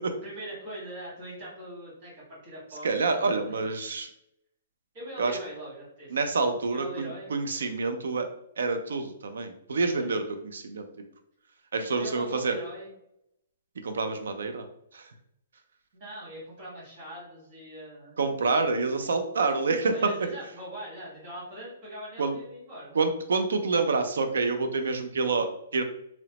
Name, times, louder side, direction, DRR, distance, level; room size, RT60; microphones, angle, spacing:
voice 1, 0.2-3.6 4.9-6.2 6.7-7.3 10.0-10.1 11.9-12.9 15.9-18.2 19.9-23.0, equal, 30° right, -7 dB, 1.4 m, -41 dB
voice 2, 2.8-4.1 5.2-5.4 6.1-8.3 8.6-10.9 11.7-12.6 13.8-14.7 14.9-15.1 18.2-20.1 22.2-22.4 22.9-25.8, right 4 dB, 85° right, 7 dB, 0.5 m, -27 dB
2.9 x 2.0 x 2.8 m, 0.77 s
hypercardioid pair, 180°, 0 cm